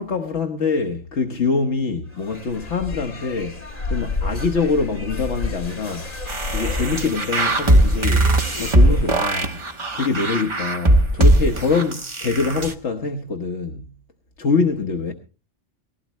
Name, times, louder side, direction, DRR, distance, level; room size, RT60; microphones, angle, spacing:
voice 1, 0.0-3.6 3.9-6.1 6.5-9.5 9.9-13.9 14.4-15.1, left 4 dB, 65° left, 1.4 m, -24 dB
sound 1, 2.1-9.3, left 3 dB, 30° left, 1.8 m, -30 dB
sound 2, 6.3-12.7, right 1 dB, 25° right, 1.1 m, -19 dB
19.0 x 16.0 x 3.1 m
omnidirectional pair, 1.3 m